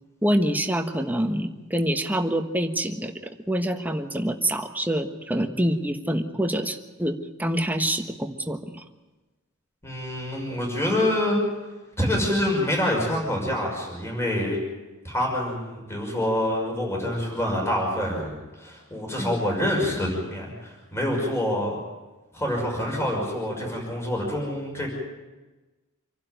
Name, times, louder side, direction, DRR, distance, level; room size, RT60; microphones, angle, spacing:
voice 1, 0.2-8.8 19.2-19.3, right 1 dB, 10° right, 6 dB, 1.3 m, -26 dB
voice 2, 9.8-11.4 12.0-14.6 15.0-21.8 22.3-24.9, left 1 dB, 10° left, -2 dB, 5.8 m, -26 dB
27.0 x 12.0 x 9.2 m, 1.2 s
head